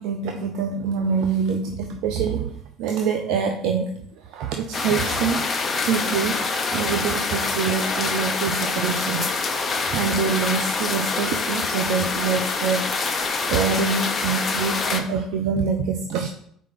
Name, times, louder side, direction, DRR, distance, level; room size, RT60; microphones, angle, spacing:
voice 1, 0.0-5.4 5.8-6.4 6.7-16.3, right 6 dB, 65° right, 5 dB, 0.5 m, -25 dB
sound 1, 4.7-15.0, left 4 dB, 35° left, 1.0 m, -25 dB
4.7 x 4.1 x 5.8 m, 0.66 s
hypercardioid pair, 60°, 0 cm